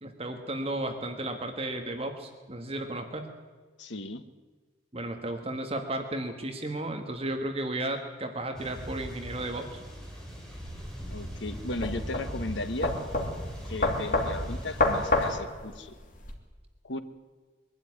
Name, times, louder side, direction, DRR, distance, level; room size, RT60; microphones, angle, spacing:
voice 1, 0.0-3.3 4.9-9.8, right 1 dB, 35° right, 5 dB, 1.7 m, -34 dB
voice 2, 3.8-4.2 11.1-12.9 13.6-15.9 16.8-17.0, left 2 dB, 80° left, 9 dB, 1.4 m, -36 dB
sound 1, 8.5-15.3, equal, 5° left, 4.1 m, -39 dB
sound 2, 10.7-16.3, left 2 dB, 45° left, 2.7 m, -29 dB
22.5 x 12.5 x 9.7 m, 1.4 s
head